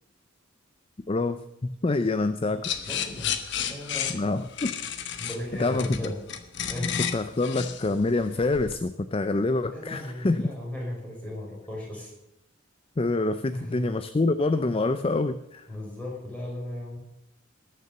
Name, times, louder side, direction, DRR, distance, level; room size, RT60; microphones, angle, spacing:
voice 1, 1.1-2.7 4.1-4.8 5.6-6.1 7.1-10.4 13.0-15.7, left 2 dB, 25° left, 11 dB, 0.5 m, -26 dB
sound 1, 2.6-8.8, left 8 dB, 60° left, 1.1 m, -32 dB
voice 2, 2.7-4.2 5.2-6.2 6.7-6.9 9.7-12.1 13.5-13.9 15.7-17.0, left 1 dB, 5° left, -4 dB, 5.5 m, -36 dB
20.0 x 6.8 x 6.7 m, 0.85 s
head